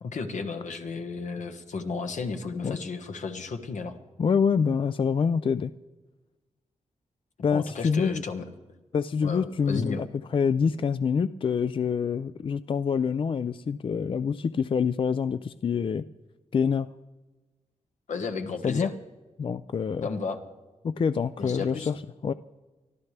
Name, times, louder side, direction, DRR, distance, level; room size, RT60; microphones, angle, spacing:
voice 1, 0.0-4.0 7.5-8.4 9.2-10.0 18.1-18.9 20.0-20.4 21.4-21.9, left 4 dB, 80° left, 5 dB, 1.3 m, -33 dB
voice 2, 4.2-5.7 7.4-8.2 8.9-10.1 10.3-16.0 16.5-16.9 18.6-18.9 19.4-20.1 20.8-22.0 22.2-22.3, left 6 dB, 45° left, 13 dB, 0.4 m, -26 dB
23.5 x 13.5 x 3.3 m, 1.2 s
wide cardioid pair, 95°, 13 cm